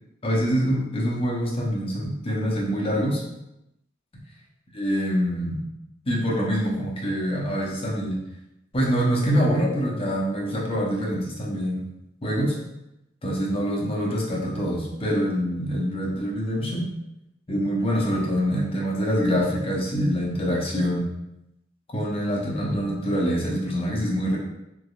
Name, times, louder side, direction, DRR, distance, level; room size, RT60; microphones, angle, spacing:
voice 1, 0.2-3.2 4.7-5.6 6.1-8.2 8.7-11.8 12.2-12.6 13.2-16.9 17.5-21.1 21.9-24.4, equal, 25° left, -4 dB, 0.7 m, -25 dB
3.4 x 3.1 x 2.3 m, 0.88 s
head